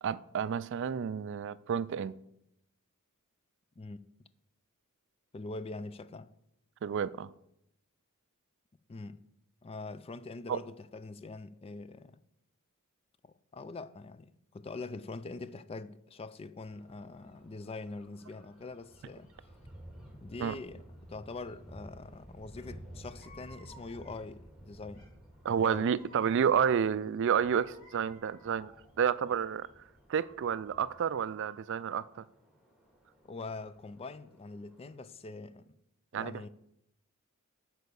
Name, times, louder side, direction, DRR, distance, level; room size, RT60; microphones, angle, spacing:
voice 1, 0.0-2.2 6.8-7.3 10.5-10.6 20.4-20.6 25.4-28.7 29.0-29.7 30.1-32.2 36.1-36.5, right 7 dB, 55° right, 0.3 m, -30 dB
voice 2, 5.3-6.3 8.9-9.2 9.6-12.2 13.2-19.3 20.2-25.1 25.6-25.9 33.3-35.8 36.1-36.5, left 3 dB, 25° left, 0.4 m, -44 dB
sound 1, 16.7-35.1, right 1 dB, 5° right, 2.0 m, -55 dB
sound 2, 22.5-22.7 23.0-24.4 24.9-26.7 27.2-29.0, equal, 45° left, 3.1 m, -58 dB
8.2 x 4.8 x 6.8 m
head